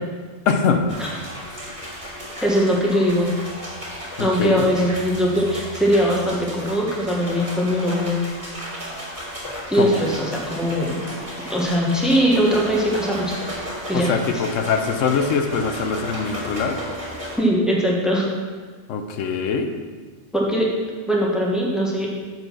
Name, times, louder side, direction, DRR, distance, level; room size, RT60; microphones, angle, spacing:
voice 1, 0.5-0.9 4.2-4.7 9.8-10.0 13.9-16.8 18.9-19.7, left 5 dB, 90° left, 6 dB, 1.0 m, -22 dB
sound 1, 0.9-17.4, equal, 45° right, 2.7 m, -34 dB
voice 2, 2.4-3.3 4.2-8.2 9.7-11.0 11.5-13.4 13.9-14.1 17.4-18.3 20.3-20.7 21.1-22.1, equal, ahead, -3 dB, 1.2 m, -20 dB
7.6 x 4.6 x 5.9 m, 1.4 s
omnidirectional pair, 1.3 m